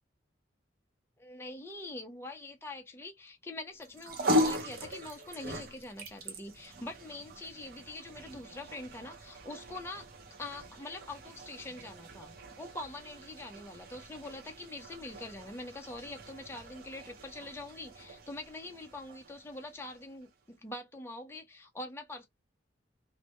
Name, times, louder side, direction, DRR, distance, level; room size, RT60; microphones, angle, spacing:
voice 1, 1.2-10.1 10.4-22.3, left 2 dB, 15° left, 0.4 m, -44 dB
sound 1, 3.8-20.3, left 1 dB, 55° right, 0.6 m, -39 dB
2.1 x 2.1 x 2.8 m
head